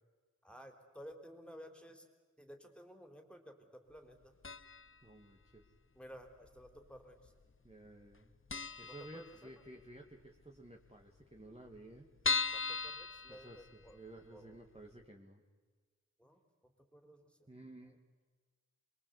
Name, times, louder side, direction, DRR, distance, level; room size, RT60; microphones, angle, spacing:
voice 1, 0.4-2.1 2.4-4.4 5.9-7.3 8.9-9.5 12.5-14.0 14.3-14.6 16.2-17.5, equal, 5° left, 5 dB, 4.1 m, -55 dB
sound 1, 4.4-5.0 5.2-5.3 6.3-7.0 7.2-7.4 7.7-7.8 8.1-8.2 8.5-9.8 10.2-10.3 10.6-10.7 10.8-10.9 11.4-14.1 14.5-14.6 15.0-15.1, left 4 dB, 40° left, 0.8 m, -38 dB
voice 2, 5.0-5.7 7.6-8.3 8.8-12.1 13.3-13.7 13.9-15.4 17.5-18.0, right 1 dB, 20° right, 0 dB, 2.4 m, -54 dB
26.5 x 22.5 x 8.4 m, 1.4 s
wide cardioid pair, 40°, 31 cm